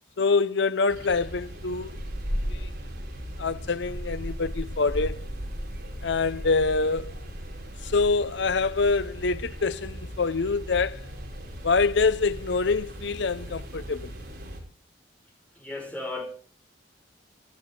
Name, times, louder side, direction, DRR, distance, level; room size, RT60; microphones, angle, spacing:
voice 1, 0.2-1.9 2.5-2.7 3.4-5.3 6.0-7.2 7.8-11.1 11.6-14.1, left 4 dB, 60° left, 0.6 m, -25 dB
sound 1, 0.9-14.6, equal, 50° right, 4.9 m, -37 dB
voice 2, 15.5-16.3, left 2 dB, 5° left, 5.1 m, -34 dB
22.5 x 13.0 x 3.7 m
head